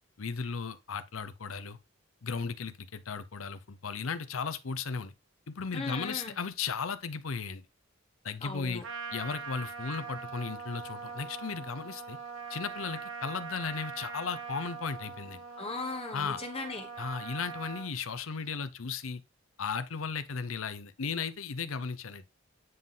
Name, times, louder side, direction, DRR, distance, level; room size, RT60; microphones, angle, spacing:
voice 1, 0.2-1.8 2.2-5.1 5.5-7.6 8.2-8.8 9.1-12.2 12.5-15.4 16.1-16.4 17.0-19.2 19.6-22.2, left 5 dB, 85° left, 0.7 m, -36 dB
voice 2, 5.7-6.3 8.4-8.8 15.6-16.9, left 3 dB, 30° left, 1.0 m, -38 dB
Trumpet, 8.8-17.9, right 5 dB, 70° right, 1.4 m, -42 dB
9.2 x 3.8 x 3.9 m
head